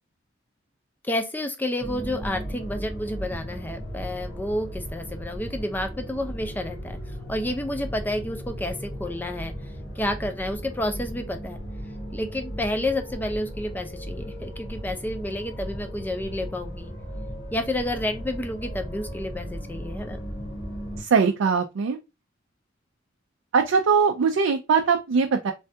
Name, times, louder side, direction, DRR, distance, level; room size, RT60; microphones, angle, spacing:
voice 1, 1.0-7.0 7.3-9.5 10.0-11.6 12.1-16.9 17.5-20.2, left 1 dB, 10° left, 0.4 m, -30 dB
sound 1, 1.8-21.0, equal, 75° left, 1.2 m, -36 dB
voice 2, 21.0-22.0 23.5-25.5, right 5 dB, 85° right, 0.4 m, -21 dB
3.3 x 2.2 x 2.7 m
head